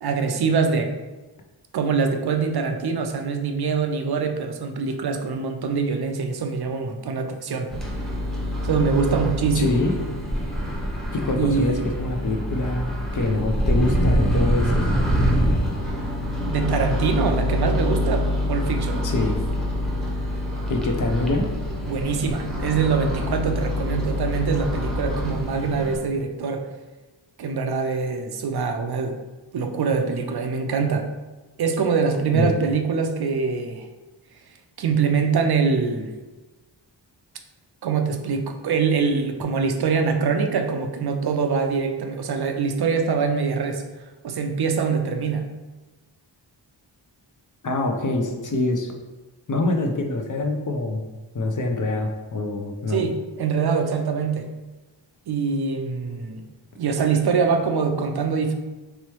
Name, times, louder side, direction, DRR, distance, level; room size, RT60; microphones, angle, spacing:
voice 1, 0.0-0.9 1.7-7.7 8.6-9.8 11.4-11.8 16.5-19.0 21.9-26.7 27.4-29.2 29.5-31.1 31.6-33.9 34.8-36.1 37.8-43.8 44.2-45.5 52.9-54.5 55.3-56.4 56.8-58.5, right 5 dB, 55° right, 5 dB, 0.5 m, -24 dB
Microwave oven, 7.7-26.0, left 1 dB, ahead, 0.9 m, -25 dB
voice 2, 9.5-9.9 11.1-14.9 18.9-19.3 20.7-21.5 32.3-32.5 47.6-48.9 49.5-51.0 51.3-53.0, left 2 dB, 45° left, 3 dB, 0.6 m, -25 dB
3.4 x 3.0 x 3.0 m, 1.2 s
cardioid pair, 55°, 45 cm